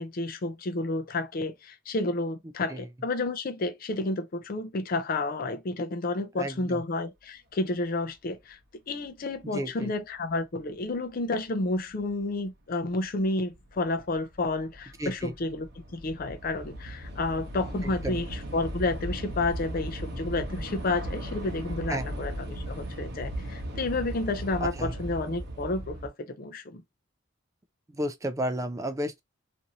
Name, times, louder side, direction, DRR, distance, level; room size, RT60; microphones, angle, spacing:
voice 1, 0.0-8.6 8.9-15.7 15.9-26.8, left 2 dB, 45° left, 0.5 m, -31 dB
voice 2, 6.4-6.8 9.4-9.9 15.0-15.3 17.8-18.2 21.9-22.1 24.6-24.9 27.9-29.2, right 1 dB, 15° right, 0.3 m, -33 dB
Train / Subway metro underground, 12.1-12.2 13.0-13.3 13.5-26.1, right 1 dB, 55° right, 0.9 m, -37 dB
2.7 x 2.6 x 2.8 m
head